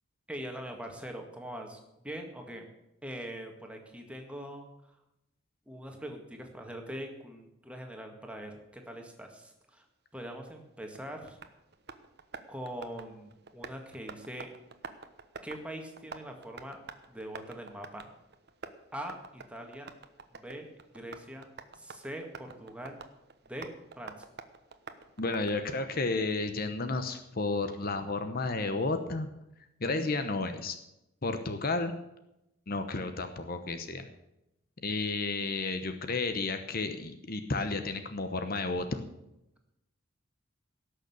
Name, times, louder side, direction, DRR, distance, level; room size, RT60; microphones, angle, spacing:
voice 1, 0.3-1.8 2.0-2.7 3.0-4.7 5.7-9.8 10.1-11.4 12.5-14.5 15.4-16.8 17.1-18.1 18.9-19.9 20.3-20.7 20.9-21.5 21.7-23.0 23.4-23.7 24.0-24.2, right 1 dB, 5° right, 3 dB, 1.9 m, -42 dB
Tap, 10.5-26.0, right 4 dB, 55° right, 1.1 m, -49 dB
voice 2, 25.2-29.3 29.8-30.8 31.2-31.9 32.7-34.0 34.8-39.0, left 3 dB, 50° left, 8 dB, 1.0 m, -32 dB
17.0 x 6.7 x 8.0 m, 0.88 s
head